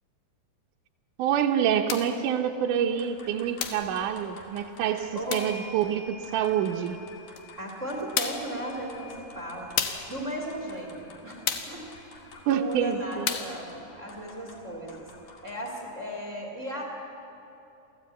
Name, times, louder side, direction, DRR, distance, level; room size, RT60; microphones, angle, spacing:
voice 1, 1.2-7.0 12.5-13.3, right 9 dB, 75° right, 3 dB, 1.9 m, -27 dB
sound 1, 1.9-2.2 3.6-3.9 5.3-5.6 7.4-7.5 8.2-8.5 9.8-10.1 11.5-11.8 13.3-13.6, left 8 dB, 70° left, 3.0 m, -31 dB
sound 2, 2.8-16.0, left 3 dB, 55° left, 3.6 m, -51 dB
voice 2, 5.1-5.4 7.6-9.7 10.1-15.1 15.4-16.8, right 1 dB, 20° right, 1 dB, 2.5 m, -36 dB
sound 3, 5.3-13.4 14.7-14.8 15.1-16.2, left 1 dB, 25° left, 2.3 m, -51 dB
28.0 x 16.0 x 8.4 m, 3.0 s
omnidirectional pair, 4.6 m